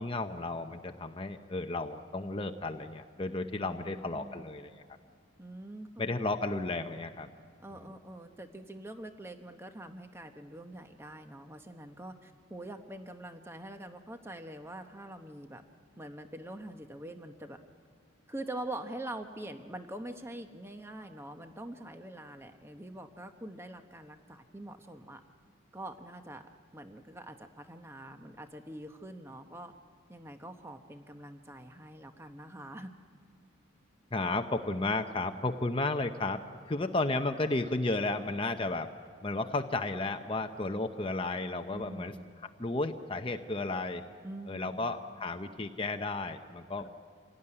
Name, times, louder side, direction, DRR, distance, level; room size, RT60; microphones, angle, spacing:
voice 1, 0.0-4.7 6.0-7.3 34.1-38.9 39.2-42.1 42.6-44.0 44.5-46.9, left 2 dB, 25° left, 6 dB, 0.7 m, -33 dB
voice 2, 3.6-4.5 5.4-6.3 7.6-15.6 16.0-17.6 18.3-25.2 25.7-26.4 26.7-29.7 30.1-32.9 41.7-42.3 44.2-45.0 46.8-46.9, right 1 dB, 10° right, 6 dB, 0.9 m, -44 dB
27.0 x 18.0 x 9.9 m, 2.1 s
head